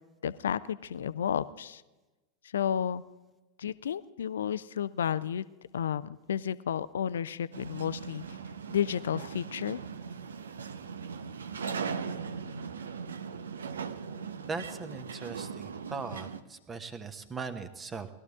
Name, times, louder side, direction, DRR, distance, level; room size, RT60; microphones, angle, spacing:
voice 1, 0.2-1.8 2.5-3.0 3.6-5.5 5.7-8.2 8.7-9.8, left 8 dB, 65° left, 17 dB, 0.5 m, -32 dB
sound 1, 7.5-16.4, right 6 dB, 70° right, 0.7 m, -39 dB
voice 2, 14.4-18.1, right 4 dB, 20° right, 10 dB, 1.1 m, -39 dB
20.0 x 13.0 x 3.6 m, 1.1 s
figure-of-eight pair, 90°, 0 cm